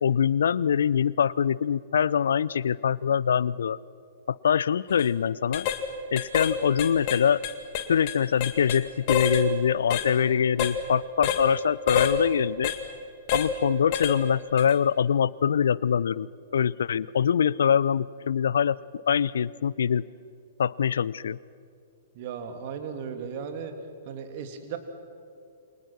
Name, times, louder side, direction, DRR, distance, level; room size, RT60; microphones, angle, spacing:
voice 1, 0.0-3.8 4.3-5.7 6.1-7.4 7.9-12.7 13.3-18.8 19.1-20.0 20.6-21.4, left 8 dB, 60° left, 22 dB, 0.5 m, -24 dB
sound 1, 4.9-5.1 5.5-5.8 6.2-6.5 6.8-8.8 9.1-9.4 9.9-10.1 10.6-10.8 11.2-11.4 11.9-12.2 12.6-12.8 13.3-13.5 13.9-14.2 14.6-14.7, left 8 dB, 40° left, 2.1 m, -27 dB
voice 2, 22.1-23.7 24.0-24.8, right 7 dB, 45° right, 6 dB, 2.8 m, -36 dB
28.5 x 25.0 x 6.1 m, 2.5 s
figure-of-eight pair, 110°, 0 cm